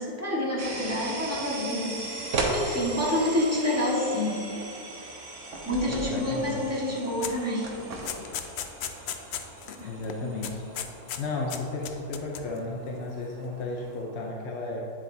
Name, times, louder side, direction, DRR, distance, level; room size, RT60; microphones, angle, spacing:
voice 1, 0.0-4.4 5.6-7.7 9.8-9.9 10.2-10.3, left 1 dB, 10° right, -6 dB, 1.5 m, -28 dB
sound 1, 0.6-14.3, right 2 dB, 75° right, 1.9 m, -42 dB
sound 2, 2.3-2.6 5.5-6.1 7.6-8.4, right 3 dB, 55° right, 1.2 m, -31 dB
voice 2, 5.9-6.6 9.8-14.8, left 3 dB, 55° left, -1 dB, 0.9 m, -34 dB
sound 3, 7.2-7.4 7.7-9.8 10.0-10.2 10.4-11.2 11.5-12.6, left 8 dB, 90° left, 0.5 m, -36 dB
9.4 x 8.0 x 2.7 m, 3.0 s
omnidirectional pair, 1.7 m